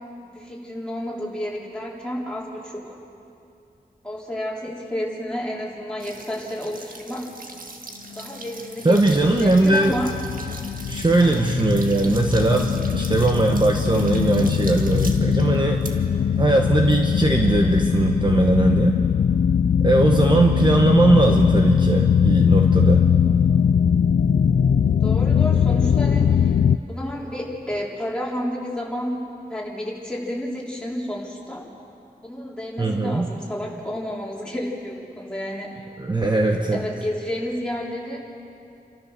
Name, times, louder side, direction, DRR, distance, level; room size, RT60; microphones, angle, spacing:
voice 1, 0.2-3.0 4.0-7.3 8.2-10.1 11.2-11.5 25.0-26.6 26.9-29.2 29.5-31.6 32.2-35.8 36.3-38.2, left 1 dB, 5° left, -4 dB, 3.7 m, -31 dB
sound 1, 6.0-17.6, right 2 dB, 60° right, 1.6 m, -41 dB
voice 2, 8.8-10.0 10.9-15.8 16.4-19.0 19.8-23.1 32.8-33.3 36.0-36.8, right 2 dB, 30° right, 2 dB, 1.0 m, -19 dB
sound 2, 9.1-26.8, left 7 dB, 75° left, 0.4 m, -21 dB
29.5 x 13.5 x 6.6 m, 2.6 s
wide cardioid pair, 105°, 16 cm